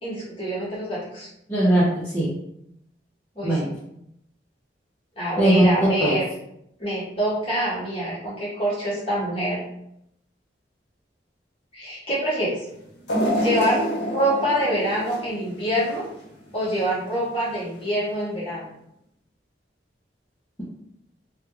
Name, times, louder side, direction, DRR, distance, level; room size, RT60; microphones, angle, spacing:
voice 1, 0.0-1.3 3.3-3.8 5.1-6.3 6.8-9.6 11.7-12.6 13.4-16.0 16.5-18.7, equal, 30° left, -8 dB, 1.5 m, -25 dB
voice 2, 1.5-2.3 3.4-3.7 5.4-6.2, right 1 dB, 15° left, -9 dB, 0.7 m, -19 dB
sound 1, 13.1-16.2 16.7-16.8 17.8-17.9, equal, 75° left, 0.8 m, -27 dB
3.1 x 2.3 x 3.1 m, 0.77 s
head